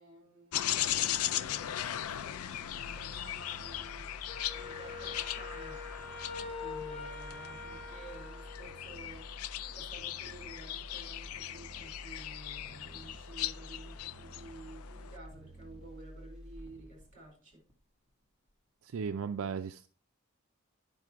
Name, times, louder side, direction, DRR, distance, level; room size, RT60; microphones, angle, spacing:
voice 1, 0.0-4.1 4.5-5.8 6.6-9.5 9.7-17.6, right 2 dB, 35° right, 4.8 m, -52 dB
sound 1, 0.5-15.2, left 12 dB, 90° left, 0.4 m, -38 dB
sound 2, 2.4-18.1 18.5-18.6, equal, 5° right, 1.5 m, -50 dB
Wind instrument woodwind instrument, 4.3-8.9, left 4 dB, 50° left, 4.5 m, -44 dB
voice 2, 18.8-19.9, right 6 dB, 70° right, 0.4 m, -36 dB
10.5 x 5.8 x 4.6 m
head